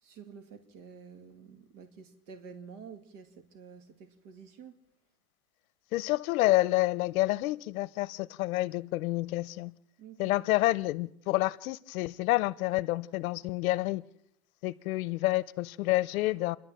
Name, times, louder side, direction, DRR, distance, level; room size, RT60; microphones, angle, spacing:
voice 1, 0.0-4.8 10.0-10.4, right 6 dB, 55° right, 2.4 m, -49 dB
voice 2, 5.9-9.7 10.2-14.0 14.6-16.6, left 18 dB, 65° left, 0.8 m, -28 dB
29.5 x 11.5 x 7.6 m
supercardioid pair, 155°, 45 cm